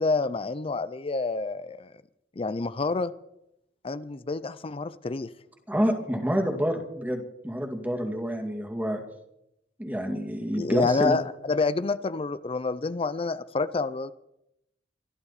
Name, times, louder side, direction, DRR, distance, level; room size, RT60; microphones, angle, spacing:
voice 1, 0.0-1.9 2.4-3.1 3.8-5.3 10.5-14.1, left 3 dB, 30° left, 0.5 m, -28 dB
voice 2, 5.7-9.0 9.8-11.2, equal, 10° right, 2.3 m, -28 dB
25.0 x 12.0 x 4.2 m
head